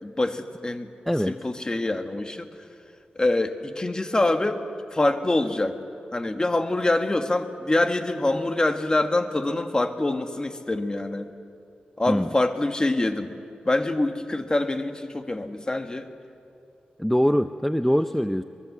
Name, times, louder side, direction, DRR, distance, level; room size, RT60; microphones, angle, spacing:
voice 1, 0.0-0.9 1.3-2.5 3.1-4.6 4.9-5.8 6.1-11.3 12.0-13.3 13.6-16.1, left 2 dB, 25° left, 7 dB, 1.6 m, -25 dB
voice 2, 1.1-1.4 12.1-12.3 17.0-18.4, equal, 5° left, 10 dB, 0.6 m, -23 dB
24.0 x 21.0 x 7.8 m, 2.6 s
cardioid pair, 65°, 3 cm